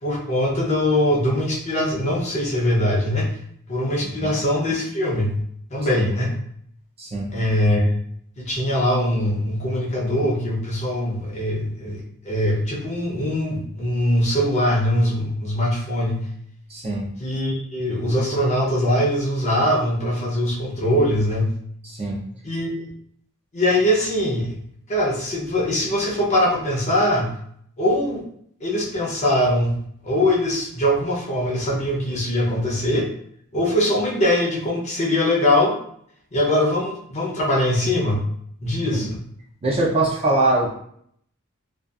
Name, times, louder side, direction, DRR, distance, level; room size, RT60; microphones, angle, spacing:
voice 1, 0.0-3.3 3.7-5.4 5.7-6.3 7.3-7.8 8.4-16.3 17.2-21.6 22.4-22.9 23.5-24.5 24.9-27.3 27.8-28.2 28.6-33.1 33.5-35.7 36.3-38.2 38.6-39.2, left 1 dB, 30° left, -3 dB, 0.6 m, -22 dB
voice 2, 7.0-7.3 16.7-17.1 21.8-22.2 38.9-39.1 39.6-40.7, right 2 dB, 30° right, -2 dB, 0.5 m, -22 dB
2.6 x 2.3 x 2.3 m, 0.66 s
head